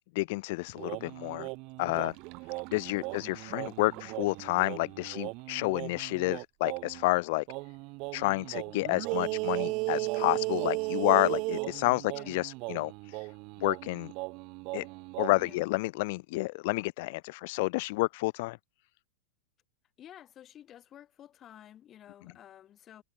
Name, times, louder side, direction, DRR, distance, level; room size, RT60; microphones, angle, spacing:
voice 1, 0.1-1.5 1.8-2.1 2.7-7.4 8.1-13.2 13.6-14.1 14.7-14.9 15.2-18.6, left 23 dB, 45° left, 1.0 m, -30 dB
sound 1, 0.8-7.1 7.5-15.6, right 27 dB, 35° right, 1.5 m, -36 dB
voice 2, 3.0-3.4 3.9-4.1 9.2-9.5 12.1-12.3 15.4-15.6 20.0-23.0, left 11 dB, 20° left, 4.5 m, -53 dB
supercardioid pair, 160°, 0 cm